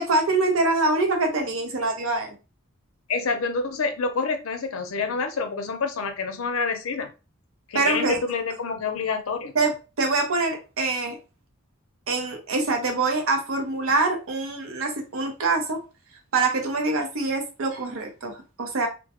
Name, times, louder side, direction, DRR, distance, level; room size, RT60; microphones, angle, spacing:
voice 1, 0.0-2.3 7.7-8.2 9.5-11.2 12.1-15.8 16.3-18.9, right 3 dB, 75° right, 0.7 m, -24 dB
voice 2, 3.1-7.1 7.7-9.5, left 4 dB, 90° left, 0.5 m, -27 dB
2.2 x 2.2 x 2.8 m
head